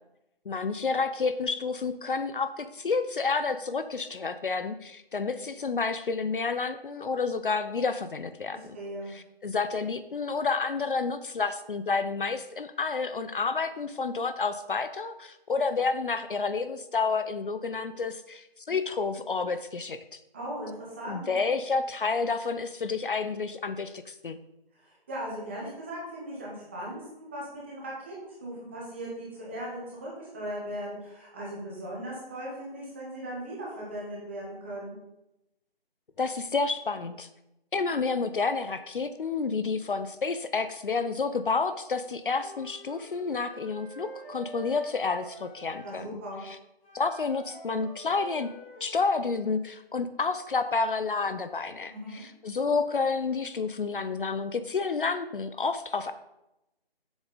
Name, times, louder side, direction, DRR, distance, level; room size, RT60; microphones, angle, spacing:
voice 1, 0.5-8.8 9.1-20.0 21.0-24.4 36.2-37.3 37.7-46.6 46.9-48.5 48.8-56.1, left 4 dB, 60° left, 11 dB, 0.5 m, -30 dB
voice 2, 8.7-9.1 20.3-21.3 24.7-28.1 28.4-35.0 45.8-46.4 51.9-52.2, right 1 dB, 10° right, -5 dB, 1.2 m, -38 dB
Wind instrument woodwind instrument, 42.3-46.0 46.8-49.4, right 2 dB, 10° left, 1.5 m, -47 dB
7.1 x 6.9 x 4.0 m, 0.89 s
hypercardioid pair, 175°, 30 cm